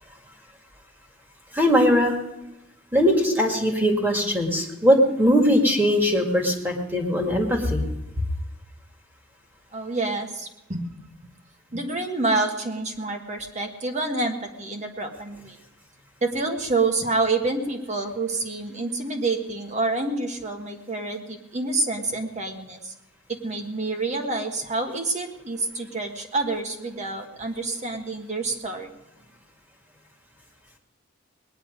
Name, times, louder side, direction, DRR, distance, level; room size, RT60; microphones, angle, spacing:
voice 1, 1.5-2.1 2.9-7.8, equal, 10° right, 1 dB, 2.0 m, -20 dB
voice 2, 9.7-10.9 11.7-15.6 16.2-22.9 23.4-28.9, right 3 dB, 35° right, 4 dB, 1.5 m, -28 dB
19.5 x 10.0 x 5.2 m, 0.97 s
head